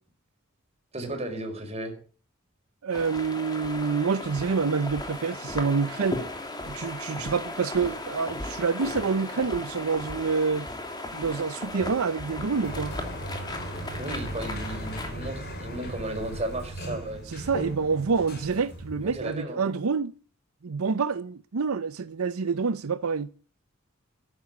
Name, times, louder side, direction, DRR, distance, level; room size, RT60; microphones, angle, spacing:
voice 1, 0.9-1.9 14.0-17.2 19.0-19.6, right 1 dB, 30° right, 4.9 m, -34 dB
voice 2, 2.8-6.2 6.7-10.7 11.1-12.9 17.3-20.1 20.6-23.3, right 5 dB, 85° right, 0.6 m, -27 dB
sound 1, 2.9-15.1, left 2 dB, 20° left, 2.8 m, -36 dB
Sliding door, 12.2-19.4, right 1 dB, 50° left, 5.0 m, -37 dB
13.0 x 11.0 x 8.4 m
head